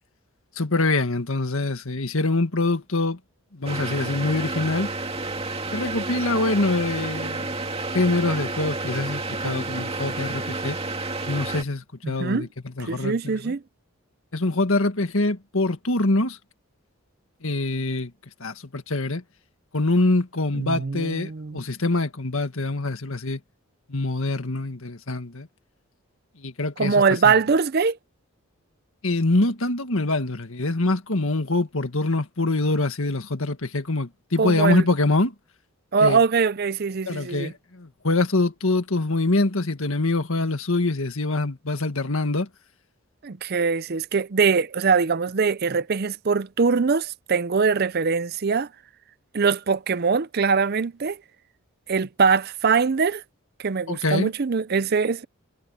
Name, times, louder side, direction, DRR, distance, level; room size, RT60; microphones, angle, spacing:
voice 1, 0.6-3.2 3.5-4.9 5.7-7.5 7.9-10.8 11.2-12.5 12.8-13.5 14.3-16.4 17.4-18.1 18.4-19.2 19.7-23.4 23.9-25.5 26.4-27.3 29.0-35.3 36.0-36.2 37.1-42.5 53.9-54.3, left 2 dB, 70° left, 1.8 m, -24 dB
sound 1, 3.7-11.6, right 3 dB, 25° right, 2.4 m, -30 dB
voice 2, 12.0-12.5 12.9-13.6 20.5-21.6 26.8-28.0 34.4-34.9 35.9-37.5 43.2-48.7 49.3-51.2 51.9-53.2 53.6-55.3, right 5 dB, 45° right, 0.5 m, -22 dB
head